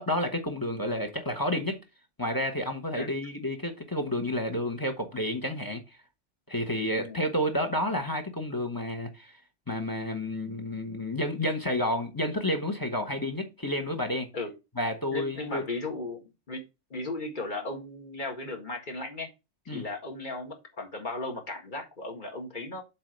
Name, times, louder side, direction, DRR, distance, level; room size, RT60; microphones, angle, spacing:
voice 1, 0.0-1.8 2.2-5.8 6.5-9.4 9.7-14.3 14.8-15.6 19.7-19.8, left 1 dB, 15° left, 1.1 m, -30 dB
voice 2, 15.1-16.6 16.9-19.3 19.7-22.8, left 2 dB, 35° left, 1.9 m, -36 dB
7.5 x 3.8 x 6.5 m
omnidirectional pair, 1.4 m